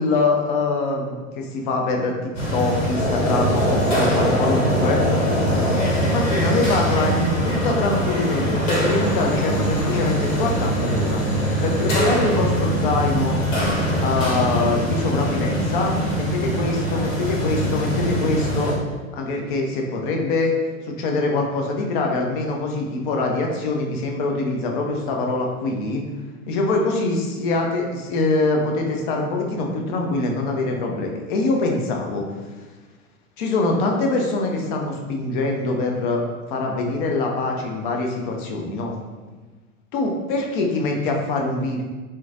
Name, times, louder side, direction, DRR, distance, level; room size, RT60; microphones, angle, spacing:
voice 1, 0.0-2.1 2.5-5.1 6.1-11.2 11.6-13.4 14.0-18.7 19.1-20.5 20.8-26.0 26.5-32.3 33.4-38.9 39.9-41.8, left 3 dB, 40° left, 1 dB, 0.4 m, -24 dB
sound 1, 2.3-18.7, equal, 60° left, 1.0 m, -22 dB
3.1 x 2.1 x 2.4 m, 1.3 s
figure-of-eight pair, 95°, 43 cm